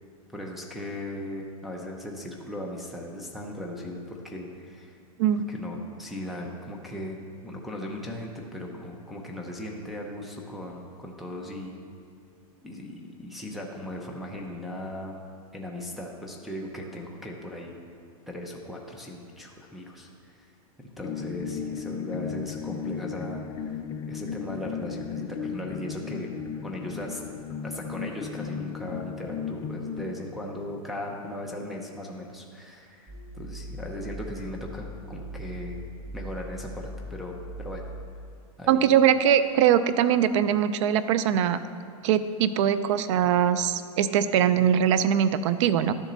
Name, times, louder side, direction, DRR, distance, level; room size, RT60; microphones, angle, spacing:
voice 1, 0.3-4.9 5.5-7.2 7.4-11.8 12.6-15.1 15.5-17.7 18.3-20.5 21.0-23.4 24.1-26.3 26.6-27.2 27.6-35.8 36.1-37.8 38.6-39.0, left 1 dB, ahead, -2 dB, 0.8 m, -37 dB
sound 1, 21.0-30.1, left 7 dB, 20° left, 0.3 m, -35 dB
sound 2, 33.1-38.1, equal, 15° right, 1.1 m, -40 dB
voice 2, 38.7-41.6 42.0-45.9, right 9 dB, 55° right, 13 dB, 0.5 m, -22 dB
12.0 x 7.3 x 4.0 m, 2.3 s
supercardioid pair, 150°, 19 cm